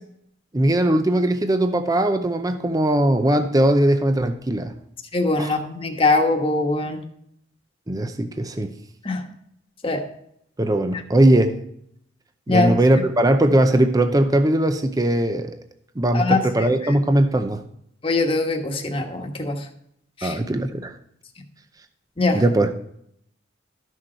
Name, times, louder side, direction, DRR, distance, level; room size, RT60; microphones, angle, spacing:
voice 1, 0.5-4.7 5.4-5.5 7.9-8.7 10.6-11.6 12.5-15.6 16.0-17.6 20.2-20.9 22.3-22.7, right 1 dB, 20° right, 8 dB, 0.5 m, -19 dB
voice 2, 5.1-7.0 9.0-9.2 9.8-10.0 12.5-12.7 16.1-16.7 18.0-19.6 20.2-20.4 22.2-22.4, left 3 dB, 30° left, 2 dB, 1.3 m, -22 dB
12.5 x 6.4 x 4.4 m, 0.71 s
head